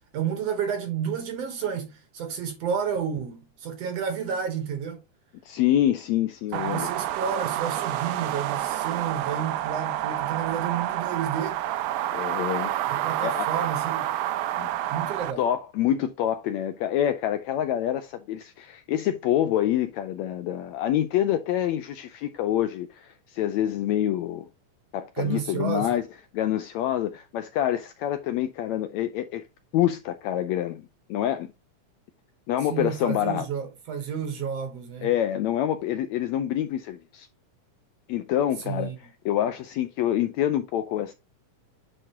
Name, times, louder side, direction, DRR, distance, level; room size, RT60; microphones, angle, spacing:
voice 1, 0.1-5.0 6.5-11.6 12.9-14.2 14.9-15.4 25.2-26.0 32.7-35.1 38.6-39.0, right 7 dB, 65° right, 1.9 m, -31 dB
voice 2, 5.4-6.9 12.1-12.7 13.2-13.5 14.6-14.7 15.4-24.4 24.9-26.0 26.3-29.4 29.7-31.5 32.5-33.5 35.0-37.3 38.1-38.9 39.2-41.1, left 11 dB, 80° left, 1.7 m, -26 dB
sound 1, 6.5-15.3, right 13 dB, 85° right, 2.1 m, -28 dB
10.0 x 4.0 x 2.9 m
omnidirectional pair, 3.6 m